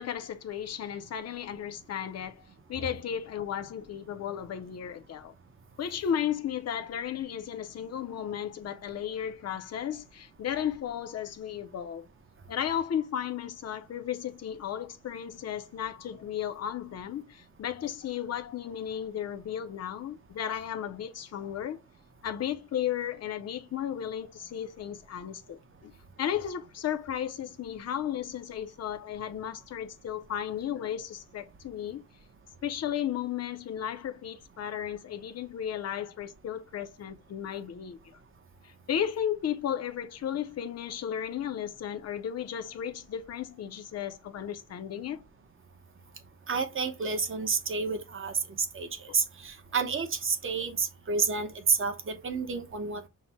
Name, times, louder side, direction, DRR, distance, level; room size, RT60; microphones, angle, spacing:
voice 1, 0.0-2.4 2.7-5.3 5.8-12.1 12.5-21.8 22.2-25.9 26.2-32.0 32.6-38.0 38.6-45.2 49.1-49.2, left 9 dB, 50° left, 0.5 m, -34 dB
voice 2, 46.5-48.9 49.1-53.1, right 5 dB, 40° right, 0.8 m, -30 dB
5.8 x 2.1 x 4.0 m
wide cardioid pair, 150°, 32 cm